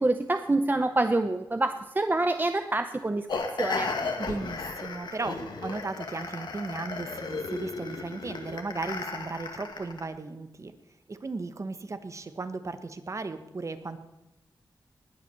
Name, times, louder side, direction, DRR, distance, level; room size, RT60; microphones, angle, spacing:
voice 1, 0.0-3.9, right 2 dB, 25° right, 9 dB, 0.7 m, -26 dB
sound 1, 3.3-10.1, left 4 dB, 80° left, 1.9 m, -35 dB
voice 2, 4.2-10.7 11.1-14.0, right 3 dB, 40° right, 10 dB, 1.2 m, -36 dB
19.5 x 8.4 x 7.0 m, 0.96 s
wide cardioid pair, 90°, 8 cm